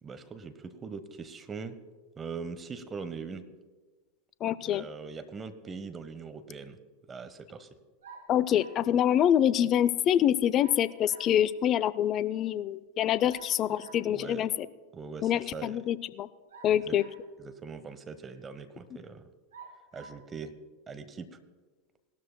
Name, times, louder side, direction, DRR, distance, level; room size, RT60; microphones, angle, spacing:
voice 1, 0.0-1.8 2.2-3.4 4.6-6.8 7.1-7.7 13.2-13.3 13.7-13.8 14.0-14.5 14.9-15.8 16.8-17.0 17.4-19.3 19.9-20.5 20.9-21.3, right 5 dB, 25° right, 11 dB, 1.0 m, -41 dB
voice 2, 4.4-4.9 8.3-14.5 15.2-16.3 16.6-17.0, left 10 dB, 40° left, 18 dB, 0.5 m, -26 dB
sound 1, 8.0-8.9 10.6-11.4 13.3-14.1 16.5-17.4 18.1-18.2 19.5-20.2, right 5 dB, 80° right, 1.9 m, -51 dB
18.5 x 13.0 x 2.2 m, 1.3 s
hypercardioid pair, 90°, 0 cm